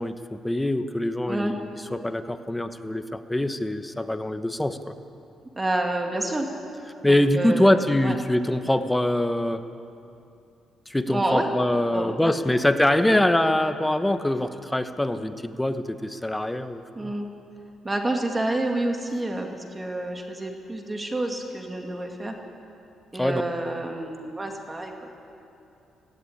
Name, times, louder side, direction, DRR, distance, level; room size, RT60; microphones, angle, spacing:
voice 1, 0.0-4.9 7.0-9.7 10.9-17.1 23.2-23.4, left 1 dB, 10° left, 9 dB, 1.1 m, -24 dB
voice 2, 5.6-6.5 7.0-8.2 11.1-11.5 11.9-12.3 13.1-13.2 16.9-17.3 17.8-22.3 23.1-25.1, right 1 dB, 20° right, 3 dB, 2.5 m, -28 dB
17.5 x 16.0 x 9.9 m, 2.6 s
cardioid pair, 90°, 0 cm